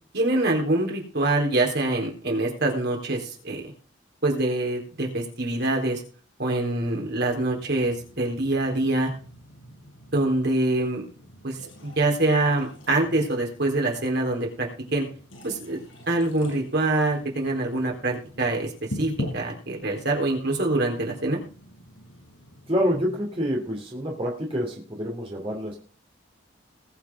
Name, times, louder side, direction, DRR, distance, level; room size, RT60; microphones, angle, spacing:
voice 1, 0.1-3.7 4.2-6.0 6.4-9.1 10.1-11.1 11.4-15.1 15.4-15.8 16.1-18.7 19.0-21.4, right 2 dB, 60° right, 0 dB, 3.9 m, -25 dB
sound 1, 6.8-23.1, equal, 90° left, 7.8 m, -43 dB
voice 2, 22.7-25.8, equal, 30° right, -1 dB, 3.0 m, -27 dB
20.5 x 7.5 x 3.8 m, 0.40 s
head